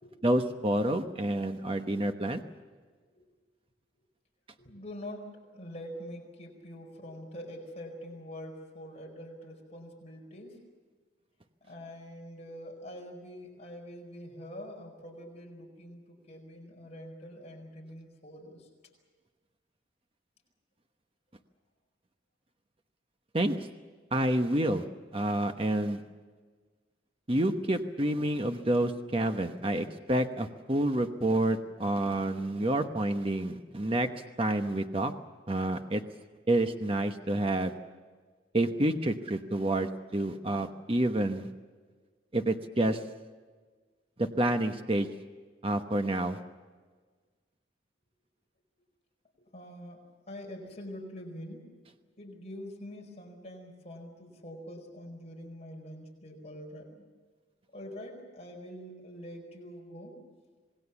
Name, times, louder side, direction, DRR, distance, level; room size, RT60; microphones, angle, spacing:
voice 1, 0.2-2.4 23.3-23.7 24.1-24.8 25.1-26.0 27.3-34.1 34.4-35.1 35.5-36.0 36.5-37.7 38.5-41.5 42.3-43.0 44.2-45.1 45.6-46.4, right 1 dB, 30° right, 6 dB, 1.0 m, -28 dB
voice 2, 4.6-10.6 11.6-18.7 49.5-51.7 52.2-57.1 57.7-60.2, equal, 35° left, 1 dB, 4.9 m, -45 dB
27.0 x 20.0 x 7.1 m, 1.4 s
head